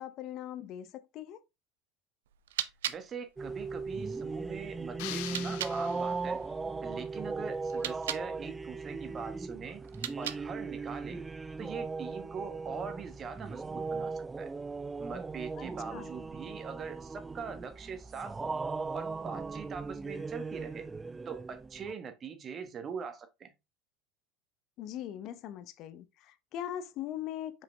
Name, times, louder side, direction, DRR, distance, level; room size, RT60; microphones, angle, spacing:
voice 1, 0.0-1.4 15.6-16.1 24.8-27.6, left 11 dB, 55° left, 0.8 m, -41 dB
sound 1, 2.2-5.8 7.6-8.3 9.8-10.7, right 11 dB, 85° right, 0.5 m, -40 dB
voice 2, 2.9-6.4 6.8-9.8 10.2-11.2 11.6-14.5 15.0-18.5 18.9-20.8 21.2-23.5, right 6 dB, 35° right, 1.4 m, -42 dB
sound 2, 3.4-21.9, right 4 dB, 20° right, 0.3 m, -38 dB
sound 3, 5.0-6.5, left 18 dB, 70° left, 0.4 m, -43 dB
5.6 x 5.0 x 3.4 m
hypercardioid pair, 90°, 0 cm